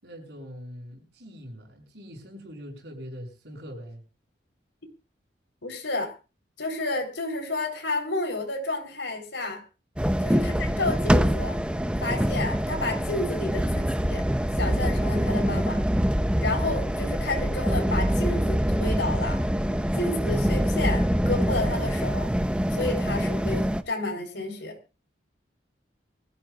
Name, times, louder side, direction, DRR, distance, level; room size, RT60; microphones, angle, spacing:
voice 1, 0.0-4.0, equal, 65° right, 1 dB, 7.3 m, -42 dB
voice 2, 5.6-6.1 6.6-9.6 10.2-11.6 12.0-14.2 14.6-15.8 16.4-19.4 20.0-22.3 22.7-24.8, left 2 dB, 80° left, 3 dB, 4.1 m, -31 dB
sound 1, 10.0-23.8, equal, 5° right, 0.7 m, -25 dB
24.0 x 14.0 x 2.5 m, 0.31 s
head